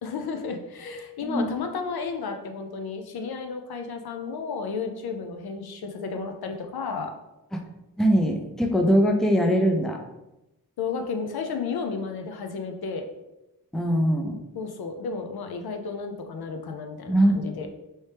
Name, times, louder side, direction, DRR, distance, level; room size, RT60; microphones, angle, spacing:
voice 1, 0.0-7.1 10.8-13.1 14.5-17.7, left 5 dB, 90° left, 5 dB, 0.6 m, -32 dB
voice 2, 8.0-10.0 13.7-14.3 17.1-17.4, equal, ahead, 2 dB, 0.4 m, -21 dB
4.3 x 3.2 x 3.3 m, 0.96 s
wide cardioid pair, 130°, 36 cm